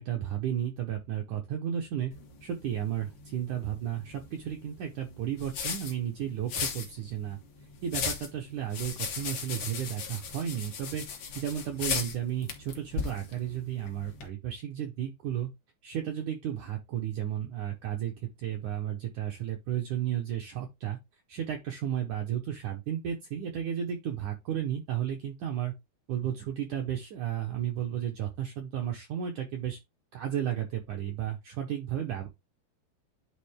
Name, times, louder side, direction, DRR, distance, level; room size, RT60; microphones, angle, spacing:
voice 1, 0.0-2.1 2.4-7.4 7.8-11.1 11.4-15.5 15.8-21.0 21.3-25.7 26.1-29.8 30.1-32.3, right 10 dB, 65° right, 2.0 m, -33 dB
sound 1, 2.1-14.3, left 6 dB, 90° left, 1.1 m, -38 dB
10.0 x 3.8 x 3.6 m
omnidirectional pair, 4.7 m